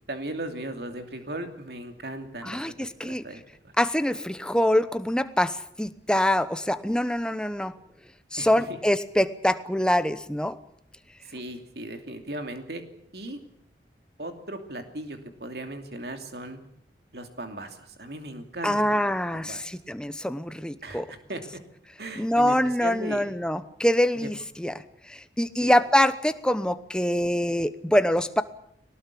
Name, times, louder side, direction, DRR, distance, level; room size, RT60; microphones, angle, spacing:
voice 1, 0.1-2.6 3.0-3.4 8.4-8.5 11.2-12.8 13.1-13.4 14.2-16.6 17.1-19.6 20.8-21.4 22.0-23.3 24.2-24.3 25.6-25.8, right 1 dB, 60° right, 6 dB, 2.8 m, -37 dB
voice 2, 2.4-3.2 3.8-7.7 8.3-10.6 18.6-21.1 22.2-24.7 25.1-28.4, left 1 dB, 5° left, 12 dB, 0.9 m, -24 dB
21.5 x 18.5 x 8.4 m, 0.69 s
head